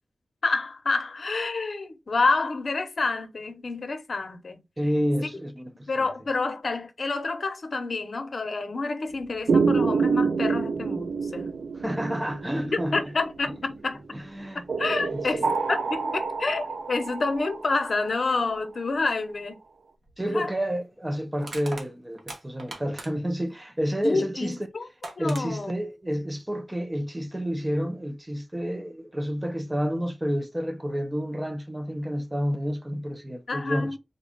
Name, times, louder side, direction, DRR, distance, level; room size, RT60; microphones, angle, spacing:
voice 1, 0.4-4.6 5.9-11.5 12.6-14.0 14.8-19.6 20.3-20.5 24.0-24.8 25.2-25.7 33.5-34.0, left 3 dB, 60° left, 0.7 m, -28 dB
voice 2, 4.8-6.1 11.7-13.1 13.5-13.6 14.1-14.6 15.0-15.5 20.2-24.6 25.2-34.0, equal, 15° right, 0.5 m, -30 dB
sound 1, 9.5-13.7 14.7-18.5, right 5 dB, 85° right, 0.4 m, -27 dB
Crushing, 20.0-20.2 21.4-23.4 24.6-24.7 25.0-25.5, right 2 dB, 70° right, 1.1 m, -40 dB
3.8 x 2.3 x 3.6 m
wide cardioid pair, 110°, 0 cm